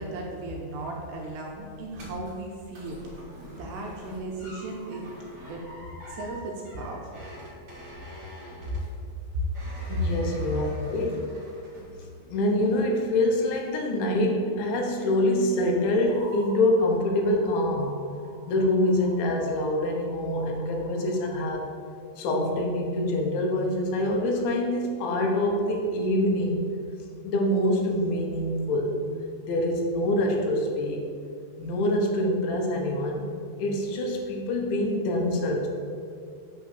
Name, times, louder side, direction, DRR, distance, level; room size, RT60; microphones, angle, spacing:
voice 1, 0.0-5.0 5.5-5.6 6.1-7.2 9.9-10.2, right 1 dB, 80° right, -1 dB, 2.6 m, -35 dB
sound 1, 1.2-12.3 12.7-13.2 13.6-13.7, equal, 50° right, 1.5 m, -46 dB
voice 2, 9.9-11.2 12.3-17.9 18.5-21.7 22.2-26.7 27.2-29.0 29.4-31.0 31.6-33.3 33.6-35.7, left 1 dB, 75° left, 1 dB, 3.1 m, -25 dB
sound 2, 16.0-21.5, left 1 dB, 55° left, 3.1 m, -49 dB
8.6 x 3.6 x 6.8 m, 2.4 s
omnidirectional pair, 5.5 m